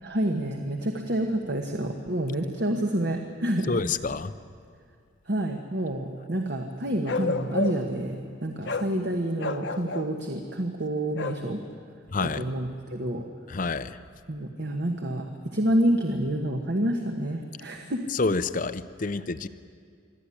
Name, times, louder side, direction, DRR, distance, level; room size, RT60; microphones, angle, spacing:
voice 1, 0.0-3.8 5.3-11.6 12.2-13.2 14.3-18.0, right 1 dB, 55° right, 3 dB, 1.3 m, -28 dB
voice 2, 3.7-4.3 12.1-12.4 13.5-14.0 18.1-19.5, left 3 dB, 40° left, 13 dB, 0.6 m, -28 dB
Bark, 7.1-8.0 8.6-8.9 9.4-10.1 11.2-11.4, left 3 dB, 60° left, 1.0 m, -30 dB
23.5 x 14.5 x 9.9 m, 2.2 s
head